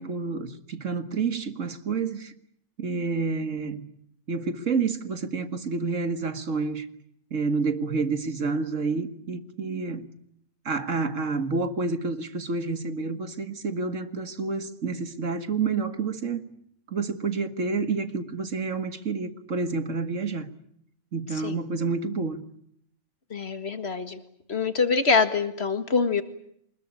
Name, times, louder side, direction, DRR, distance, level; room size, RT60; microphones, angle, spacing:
voice 1, 0.0-2.3 2.8-3.9 4.3-6.9 7.3-10.1 10.7-16.4 16.9-20.5 21.1-22.4, right 4 dB, 75° right, 10 dB, 2.1 m, -29 dB
voice 2, 23.3-24.2 24.5-26.2, left 4 dB, 55° left, 10 dB, 2.0 m, -24 dB
24.5 x 21.0 x 9.8 m, 0.70 s
omnidirectional pair, 1.3 m